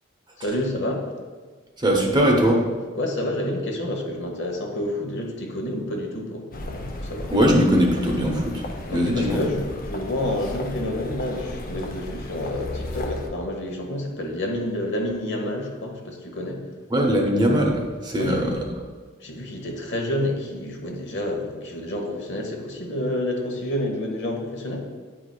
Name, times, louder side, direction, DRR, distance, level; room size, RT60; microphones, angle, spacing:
voice 1, 0.4-1.1 2.9-7.3 8.9-16.7 18.2-18.6 19.2-24.9, left 1 dB, 60° left, 1 dB, 1.0 m, -29 dB
voice 2, 1.8-2.6 7.3-8.6 8.9-9.4 16.9-18.7, equal, 20° right, 0 dB, 0.8 m, -20 dB
sound 1, 6.5-13.3, left 1 dB, 45° left, 0.6 m, -34 dB
9.2 x 4.9 x 2.3 m, 1.4 s
head